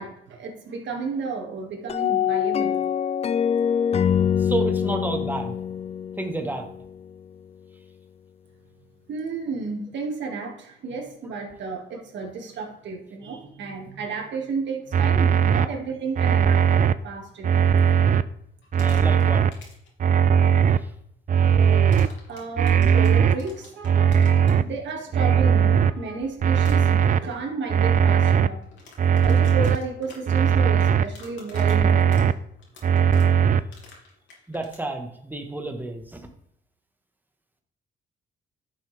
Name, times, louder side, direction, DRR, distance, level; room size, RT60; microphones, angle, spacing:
voice 1, 0.0-2.9 9.1-17.6 22.3-28.6 29.2-32.4, right 4 dB, 65° right, 0 dB, 2.4 m, -32 dB
sound 1, 1.9-7.1, left 8 dB, 30° left, 0.4 m, -24 dB
voice 2, 4.4-5.6 6.2-6.7 18.8-19.4 20.7-20.9 34.5-36.3, right 2 dB, 10° right, 4 dB, 1.5 m, -31 dB
sound 2, 14.9-15.7 16.2-16.9 17.4-18.2 18.7-19.5 20.0-20.8 21.3-22.1 22.6-23.3 23.8-24.6 25.1-25.9 26.4-27.2 27.7-28.5 29.0-29.8 30.3-31.0 31.5-32.3 32.8-33.6, right 8 dB, 40° right, 0.4 m, -18 dB
sound 3, 18.6-19.2 19.5-19.9 21.9-24.6 26.6-26.8 28.6-34.8, left 3 dB, 70° left, 2.9 m, -47 dB
11.5 x 6.3 x 3.5 m, 0.73 s
cardioid pair, 90°, 20 cm